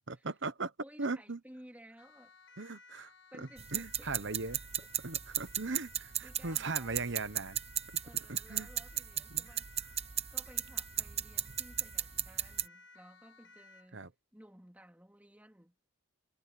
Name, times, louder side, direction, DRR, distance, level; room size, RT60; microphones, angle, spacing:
voice 1, 0.0-0.7 1.0-1.4 2.6-3.1 3.4-4.6 5.0-7.6 8.3-8.7 9.3-9.5 13.9-14.1, right 3 dB, 55° right, 1.1 m, -39 dB
voice 2, 0.8-2.3 3.3-4.3 4.8-5.1 6.2-7.2 8.0-9.7 10.3-15.7, equal, 5° right, 2.9 m, -57 dB
Siren, 2.0-14.0, left 3 dB, 60° left, 1.7 m, -58 dB
sound 1, 3.6-12.7, right 11 dB, 30° right, 0.8 m, -36 dB
head